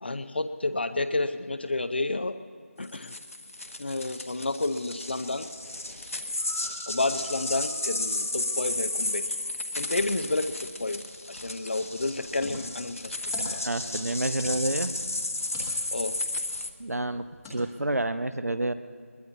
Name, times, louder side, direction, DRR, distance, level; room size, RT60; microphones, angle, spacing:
voice 1, 0.0-2.4 2.8-3.2 3.8-5.5 6.9-9.4 9.8-13.2 13.5-13.6 15.9-16.2, left 2 dB, 45° left, 10 dB, 0.6 m, -30 dB
sound 1, 2.8-16.7, left 2 dB, 65° left, 1.2 m, -33 dB
sound 2, 6.3-9.6, right 1 dB, 15° right, 1.8 m, -50 dB
sound 3, 12.1-17.6, left 1 dB, 5° left, 1.1 m, -45 dB
voice 2, 13.6-15.0 16.8-18.7, right 2 dB, 80° right, 11 dB, 0.8 m, -29 dB
21.5 x 20.5 x 2.8 m, 2.1 s
figure-of-eight pair, 170°, 8 cm